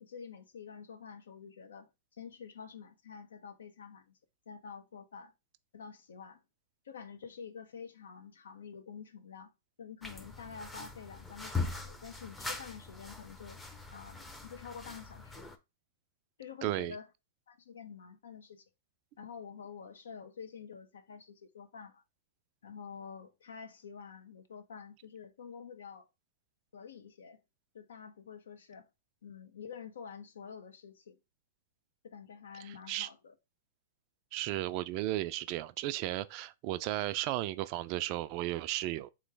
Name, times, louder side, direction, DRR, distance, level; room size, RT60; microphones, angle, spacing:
voice 1, 0.0-4.2 4.5-5.3 5.7-6.4 6.8-9.5 9.8-13.6 13.9-15.5 16.4-17.1 17.5-18.6 19.2-22.0 22.6-26.1 26.7-27.4 27.7-28.9 29.2-31.2 32.0-33.3, left 6 dB, 75° left, 0.8 m, -48 dB
sound 1, 10.0-15.6, left 3 dB, 10° left, 0.7 m, -41 dB
voice 2, 16.6-17.0 32.6-33.1 34.3-39.1, right 15 dB, 45° right, 0.4 m, -34 dB
3.7 x 3.1 x 3.3 m
hypercardioid pair, 115°, 0 cm